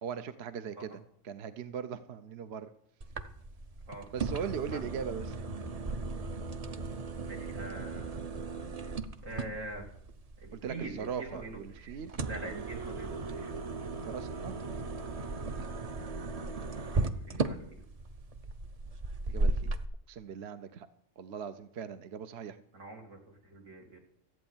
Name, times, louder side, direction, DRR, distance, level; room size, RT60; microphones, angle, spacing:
voice 1, 0.0-2.7 4.1-5.4 10.5-12.1 12.5-12.6 13.8-14.6 19.3-19.7 20.1-20.9 21.2-22.6, right 7 dB, 60° right, 11 dB, 0.9 m, -40 dB
sound 1, 3.0-19.8, right 3 dB, 35° right, 0.7 m, -36 dB
voice 2, 7.2-8.2 9.2-9.9 10.4-12.0 12.2-13.5 16.7-17.8 22.7-23.2 23.4-24.0, right 2 dB, 85° right, 1 dB, 3.1 m, -44 dB
14.0 x 8.8 x 7.2 m, 0.68 s
omnidirectional pair, 1.3 m